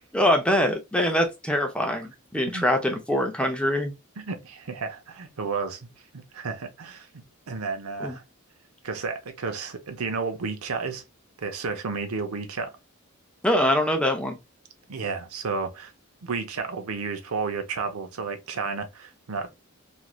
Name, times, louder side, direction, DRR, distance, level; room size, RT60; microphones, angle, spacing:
voice 1, 0.1-3.9 8.0-8.2 13.4-14.4, left 1 dB, 5° left, 0.5 m, -23 dB
voice 2, 2.5-3.0 4.2-5.9 6.1-7.1 7.5-8.2 8.8-11.0 11.4-12.7 14.9-15.9 16.2-19.5, right 4 dB, 85° right, 0.7 m, -32 dB
3.1 x 2.5 x 2.3 m
head